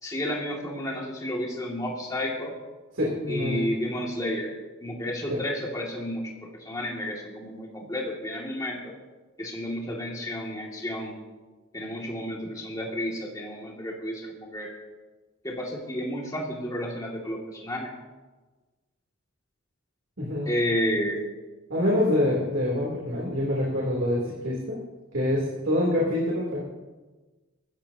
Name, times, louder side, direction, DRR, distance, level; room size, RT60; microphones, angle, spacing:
voice 1, 0.0-2.5 3.3-4.5 4.8-6.3 6.6-8.9 9.4-11.2 11.7-14.7 15.4-17.9 20.5-21.2, equal, 15° left, -2 dB, 2.3 m, -31 dB
voice 2, 2.9-3.7 5.3-5.4 20.2-20.5 21.7-24.8 25.1-26.6, left 1 dB, 65° right, -5 dB, 3.2 m, -26 dB
24.0 x 14.0 x 2.9 m, 1.3 s
head